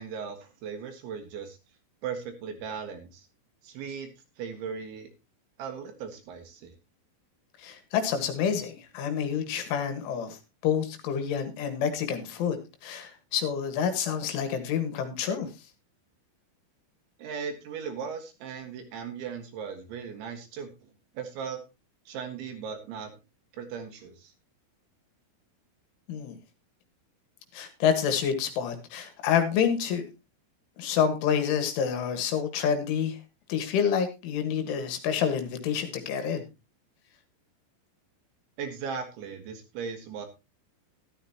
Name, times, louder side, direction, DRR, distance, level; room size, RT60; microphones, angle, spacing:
voice 1, 0.0-1.6 2.0-3.3 3.6-4.1 4.4-5.1 5.6-6.8 17.2-20.9 21.2-21.6 22.1-23.1 23.5-24.3 38.6-40.3, right 6 dB, 70° right, 5 dB, 3.9 m, -37 dB
voice 2, 7.6-10.4 10.6-15.5 26.1-26.4 27.5-30.0 30.8-33.2 33.5-36.4, left 7 dB, 75° left, 7 dB, 3.8 m, -28 dB
13.5 x 12.5 x 2.9 m, 0.27 s
omnidirectional pair, 5.9 m